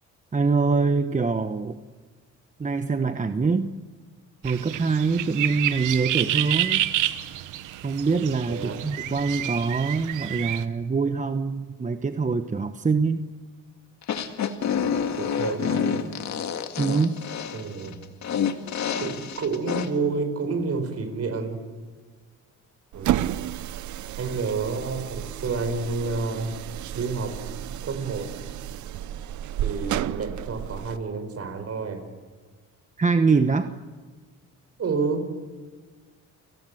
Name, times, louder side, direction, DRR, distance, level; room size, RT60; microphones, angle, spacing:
voice 1, 0.3-1.8 2.6-3.7 4.4-6.9 7.8-13.2 16.8-17.2 33.0-33.7, right 4 dB, 25° right, 9 dB, 1.1 m, -24 dB
sound 1, 4.5-10.6, right 13 dB, 90° right, 1.2 m, -29 dB
voice 2, 8.5-8.8 15.2-16.1 17.5-18.0 19.0-21.6 22.9-23.3 24.2-26.5 26.9-27.3 27.8-28.3 29.6-32.1 34.8-35.2, right 4 dB, 55° right, 9 dB, 4.9 m, -29 dB
sound 2, 14.0-19.9, left 7 dB, 65° left, 2.0 m, -28 dB
sound 3, 22.9-31.0, right 12 dB, 75° right, 0.8 m, -32 dB
29.5 x 19.0 x 7.9 m, 1.4 s
cardioid pair, 90°, 30 cm